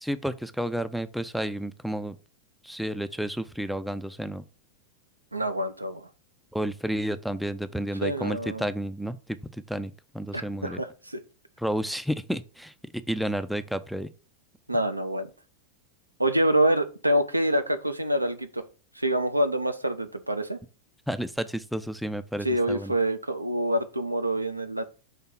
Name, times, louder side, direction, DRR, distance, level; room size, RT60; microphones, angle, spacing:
voice 1, 0.0-2.2 2.6-4.4 6.5-9.4 9.7-10.8 11.6-12.7 13.1-14.1 21.1-22.9, right 1 dB, ahead, 0.4 m, -31 dB
voice 2, 5.3-6.1 8.0-8.7 10.3-11.2 14.7-15.3 16.2-18.6 19.0-20.6 22.4-24.9, right 1 dB, 85° right, 0.6 m, -26 dB
5.7 x 3.6 x 5.5 m
figure-of-eight pair, 90°, 0 cm